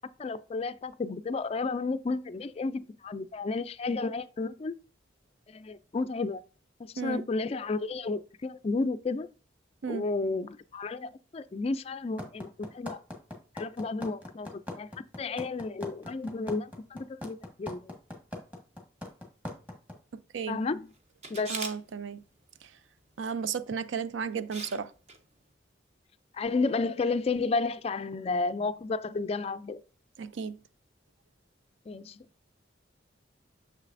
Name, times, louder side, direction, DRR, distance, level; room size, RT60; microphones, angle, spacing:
voice 1, 0.2-4.7 5.5-6.4 6.8-9.3 9.9-13.0 13.6-17.9 20.5-20.9 21.3-21.5 26.3-29.8 31.9-32.2, left 3 dB, 30° left, 0.3 m, -32 dB
voice 2, 7.0-7.3 9.8-10.1 20.3-20.6 21.5-22.2 22.6-22.7 23.2-24.9 30.2-30.6, right 6 dB, 75° right, 0.5 m, -34 dB
sound 1, 12.2-19.9, left 1 dB, 10° right, 1.5 m, -39 dB
Camera, 21.2-21.8 23.8-24.0 24.5-24.8 25.1-25.2, right 3 dB, 35° right, 1.0 m, -38 dB
6.6 x 6.4 x 2.5 m
head